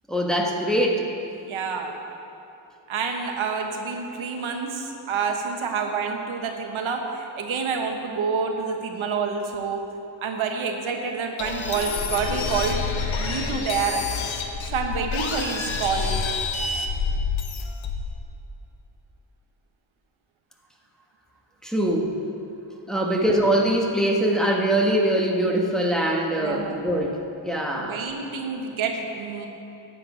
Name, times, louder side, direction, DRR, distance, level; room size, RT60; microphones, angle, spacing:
voice 1, 0.1-1.1 21.6-22.2 22.9-28.0, right 1 dB, ahead, -1 dB, 1.2 m, -23 dB
voice 2, 1.4-1.9 2.9-9.8 10.2-12.8 13.2-14.1 14.7-16.2 26.4-26.8 27.8-29.5, right 5 dB, 85° right, 3 dB, 1.2 m, -28 dB
sound 1, 11.4-18.2, left 4 dB, 75° left, 1.0 m, -28 dB
11.5 x 8.6 x 5.0 m, 2.8 s
cardioid pair, 95°, 47 cm